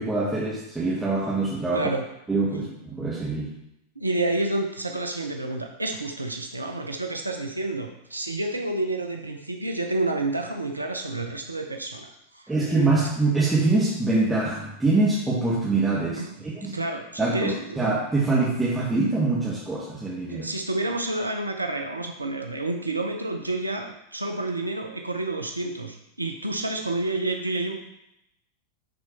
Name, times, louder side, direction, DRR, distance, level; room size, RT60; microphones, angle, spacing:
voice 1, 0.0-1.9 2.3-3.5 12.5-16.2 16.5-16.8 17.2-20.5, right 3 dB, 10° right, -6 dB, 1.6 m, -24 dB
voice 2, 1.7-2.0 2.5-2.7 4.0-12.5 16.1-16.3 16.6-17.8 20.3-27.7, right 2 dB, 85° right, 4 dB, 0.7 m, -29 dB
10.5 x 4.4 x 4.4 m, 0.83 s
figure-of-eight pair, 90°, 0 cm